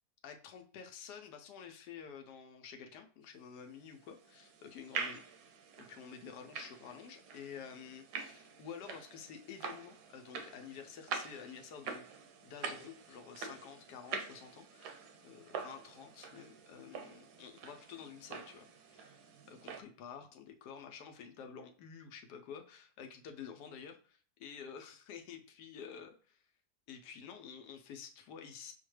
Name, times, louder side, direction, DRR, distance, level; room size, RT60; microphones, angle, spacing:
voice 1, 0.2-5.2 5.8-19.2 19.5-26.4 26.9-28.7, left 7 dB, 85° left, 5 dB, 1.2 m, -50 dB
sound 1, 3.8-19.8, right 5 dB, 80° right, 1.2 m, -46 dB
6.0 x 2.1 x 3.1 m, 0.43 s
omnidirectional pair, 1.7 m